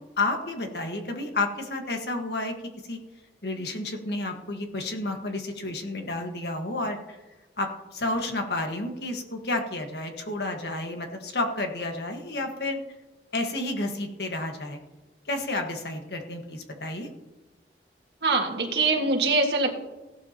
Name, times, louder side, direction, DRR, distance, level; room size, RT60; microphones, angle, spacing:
voice 1, 0.0-2.5 2.9-3.0 3.4-7.2 7.6-12.8 13.3-14.8 15.3-17.1, left 2 dB, 65° left, 4 dB, 1.6 m, -31 dB
voice 2, 18.2-19.8, right 3 dB, 70° right, 1 dB, 1.8 m, -23 dB
16.0 x 12.0 x 2.9 m, 1.1 s
head